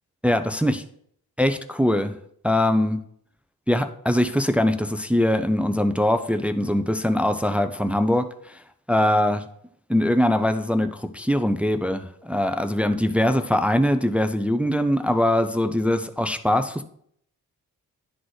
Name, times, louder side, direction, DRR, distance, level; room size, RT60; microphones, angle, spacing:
voice 1, 0.2-0.8 1.4-2.2 2.4-3.0 3.7-8.6 8.9-9.4 9.9-16.8, left 1 dB, 5° right, 9 dB, 0.5 m, -22 dB
11.0 x 3.9 x 3.2 m, 0.66 s
supercardioid pair, 50°, 39 cm